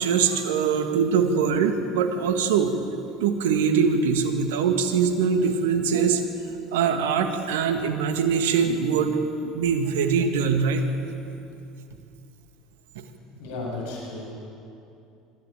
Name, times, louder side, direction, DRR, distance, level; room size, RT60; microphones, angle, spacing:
voice 1, 0.0-2.7 3.2-6.2 6.7-10.9, right 6 dB, 80° right, 7 dB, 1.7 m, -23 dB
voice 2, 13.4-14.3, left 2 dB, 75° left, -3 dB, 7.4 m, -34 dB
24.0 x 13.5 x 9.1 m, 2.6 s
hypercardioid pair, 75°, 0 cm